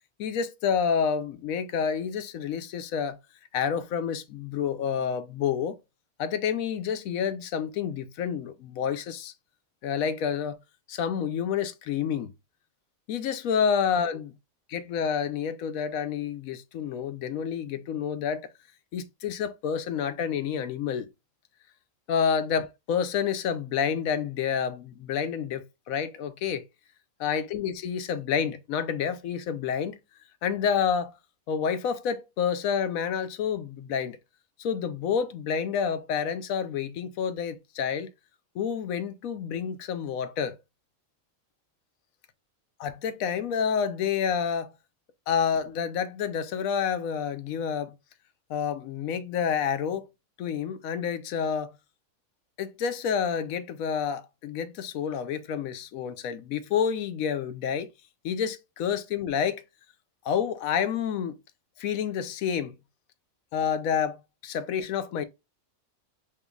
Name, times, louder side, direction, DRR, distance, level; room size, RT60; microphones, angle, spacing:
voice 1, 0.2-3.2 3.5-5.8 6.2-9.3 9.8-10.6 10.9-12.3 13.1-14.3 14.7-18.4 18.9-21.1 22.1-26.6 27.2-30.0 30.4-31.1 31.5-34.2 34.6-38.1 38.5-40.6 42.8-44.7 45.3-47.9 48.5-50.0 50.4-51.7 52.6-57.9 58.2-59.6 60.2-61.4 61.8-62.7 63.5-65.2, left 7 dB, 85° left, 1.1 m, -29 dB
5.5 x 3.1 x 2.2 m
omnidirectional pair, 1.4 m